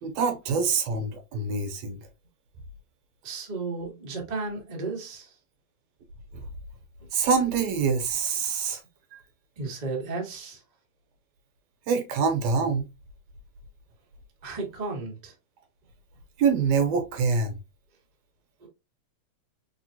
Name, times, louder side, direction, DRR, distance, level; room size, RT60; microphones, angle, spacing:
voice 1, 0.0-2.0 7.1-8.8 9.1-9.2 11.9-12.9 16.4-17.6, right 5 dB, 75° right, 1.9 m, -25 dB
voice 2, 3.2-5.3 9.6-10.6 14.4-15.3 18.6-18.7, right 3 dB, 40° right, 0.5 m, -34 dB
4.3 x 3.4 x 2.7 m
omnidirectional pair, 3.4 m